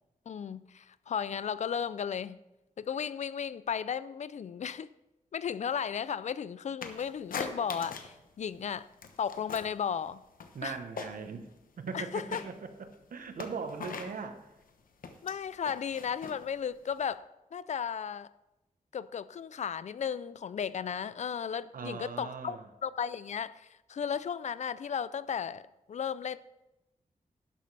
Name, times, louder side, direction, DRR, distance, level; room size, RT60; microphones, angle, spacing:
voice 1, 0.3-2.4 2.8-4.9 5.3-8.9 9.2-10.2 10.6-10.8 11.9-12.4 15.2-17.2 17.5-18.3 18.9-25.6 25.9-26.4, left 7 dB, 55° left, 17 dB, 0.4 m, -35 dB
sound 1, 6.8-8.2 8.5-9.8 10.1-11.4 11.7-17.1, left 5 dB, 85° left, 1.0 m, -42 dB
voice 2, 10.5-11.5 11.8-14.4 21.7-22.6, right 5 dB, 85° right, 7 dB, 1.0 m, -39 dB
12.0 x 10.5 x 3.3 m, 0.97 s
wide cardioid pair, 150°, 14 cm